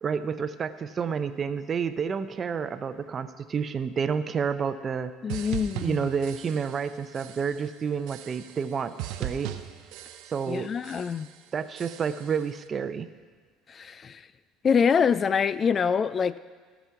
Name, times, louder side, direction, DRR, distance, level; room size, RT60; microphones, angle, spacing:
voice 1, 0.0-5.1 5.8-9.5 10.3-10.7 11.5-13.1, right 6 dB, 35° right, 11 dB, 0.6 m, -29 dB
voice 2, 5.2-6.1 10.5-11.3 13.7-14.2 14.6-16.4, left 6 dB, 35° left, 17 dB, 0.3 m, -25 dB
sound 1, 5.3-6.9 7.1-7.7 8.1-8.7 9.0-10.6 10.8-11.4 11.8-12.4, right 12 dB, 70° right, 0.7 m, -39 dB
16.0 x 6.2 x 5.8 m, 1.5 s
supercardioid pair, 90°, 0 cm